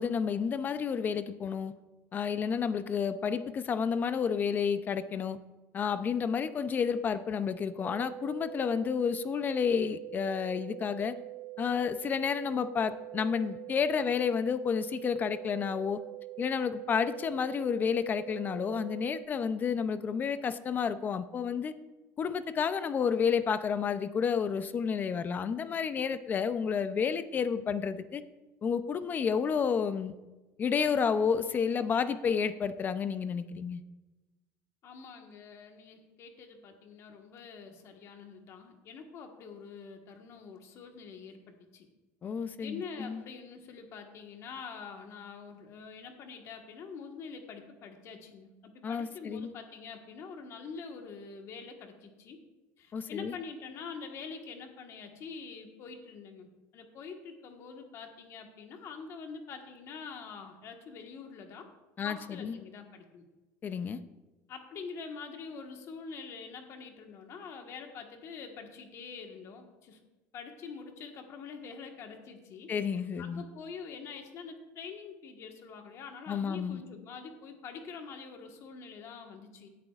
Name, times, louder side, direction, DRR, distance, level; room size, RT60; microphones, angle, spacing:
voice 1, 0.0-1.7 2.1-5.4 5.7-11.2 11.6-16.0 16.4-21.7 22.2-28.2 28.6-30.2 30.6-33.8 42.2-43.2 48.8-49.5 52.9-53.3 62.0-62.6 63.6-64.0 72.7-73.4 76.3-76.8, left 6 dB, 30° left, 12 dB, 0.4 m, -30 dB
sound 1, 7.8-19.3, right 19 dB, 80° right, 1.0 m, -44 dB
voice 2, 34.8-41.9 42.6-52.4 52.8-61.7 62.0-63.2 64.5-70.0 70.3-79.7, left 5 dB, 45° left, 4 dB, 1.4 m, -45 dB
16.5 x 10.0 x 2.4 m, 1.1 s
cardioid pair, 155°, 7 cm